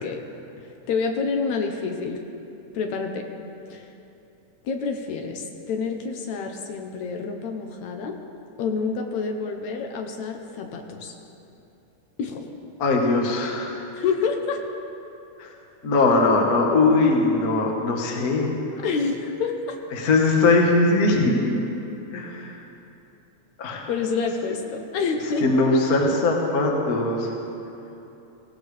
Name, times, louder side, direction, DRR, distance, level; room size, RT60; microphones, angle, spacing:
voice 1, 0.6-2.2 2.7-3.3 3.7-3.9 4.6-8.2 8.6-11.1 12.2-12.5 14.0-14.6 18.8-19.8 23.9-25.6, left 5 dB, 70° left, 4 dB, 2.1 m, -28 dB
voice 2, 12.8-13.7 15.4-15.5 15.8-18.5 20.0-21.5 22.1-22.5 23.6-23.9 25.4-27.3, left 3 dB, 45° left, 1 dB, 1.3 m, -20 dB
18.5 x 16.5 x 3.4 m, 2.8 s
omnidirectional pair, 3.5 m